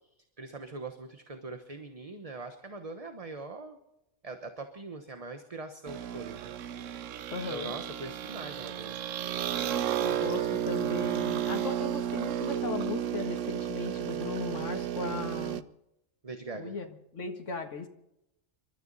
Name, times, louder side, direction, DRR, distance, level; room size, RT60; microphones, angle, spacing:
voice 1, 0.2-3.8 4.2-6.5 7.5-9.0 16.2-16.7, right 3 dB, 30° right, 6 dB, 1.2 m, -42 dB
sound 1, 5.9-15.6, right 10 dB, 85° right, 1.1 m, -33 dB
voice 2, 7.3-7.7 10.0-15.6 16.5-17.9, left 4 dB, 75° left, 5 dB, 2.1 m, -37 dB
27.0 x 13.0 x 4.1 m, 0.85 s
omnidirectional pair, 1.3 m